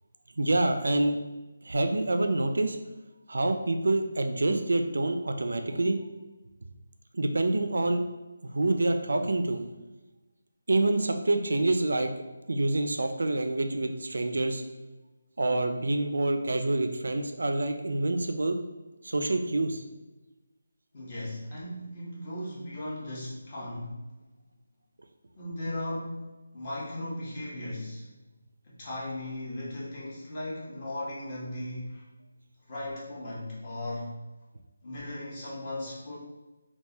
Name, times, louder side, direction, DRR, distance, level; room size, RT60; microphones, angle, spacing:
voice 1, 0.4-1.2 1.6-2.8 3.3-6.0 7.1-8.0 8.4-9.6 10.7-12.1 12.5-14.6 15.4-18.6 19.0-19.8, right 2 dB, 75° right, 6 dB, 0.4 m, -27 dB
voice 2, 20.9-24.1 25.4-28.1 28.6-32.1 32.7-34.1 34.8-36.2, left 1 dB, 35° left, -7 dB, 1.2 m, -37 dB
3.8 x 2.3 x 2.8 m, 1.1 s
figure-of-eight pair, 160°, 0 cm